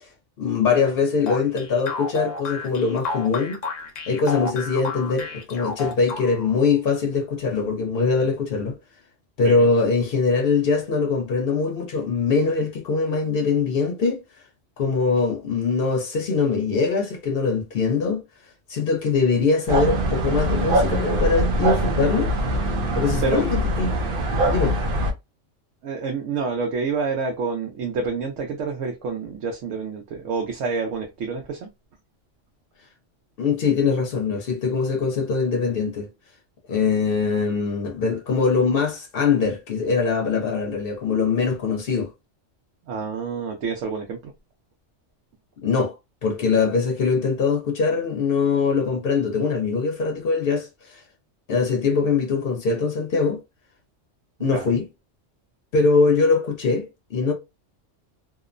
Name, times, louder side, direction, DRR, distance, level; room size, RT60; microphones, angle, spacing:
voice 1, 0.4-3.6 4.1-8.8 9.4-14.2 14.8-18.2 18.7-22.3 22.9-23.9 24.4-24.8 33.4-36.1 36.7-42.1 45.6-45.9 46.2-50.7 50.9-51.0 51.5-53.4 54.4-54.9 55.7-57.3, left 4 dB, 60° left, 0.7 m, -22 dB
sound 1, 1.3-6.6, left 3 dB, 90° left, 1.0 m, -32 dB
sound 2, 19.7-25.1, right 1 dB, 55° right, 0.7 m, -23 dB
voice 2, 25.8-31.7 42.9-44.3 54.5-54.8, right 4 dB, 80° right, 1.0 m, -28 dB
2.8 x 2.0 x 2.4 m
omnidirectional pair, 1.3 m